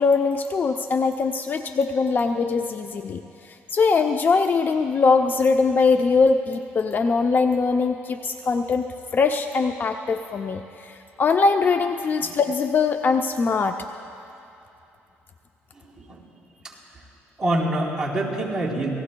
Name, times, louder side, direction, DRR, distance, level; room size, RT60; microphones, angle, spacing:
voice 1, 0.0-3.2 3.5-13.8, left 4 dB, 40° left, 6 dB, 0.5 m, -22 dB
voice 2, 15.7-16.2 16.6-16.8 17.4-18.9, right 1 dB, 15° right, -5 dB, 3.7 m, -26 dB
28.0 x 18.0 x 2.3 m, 2.8 s
cardioid pair, 100°, 5 cm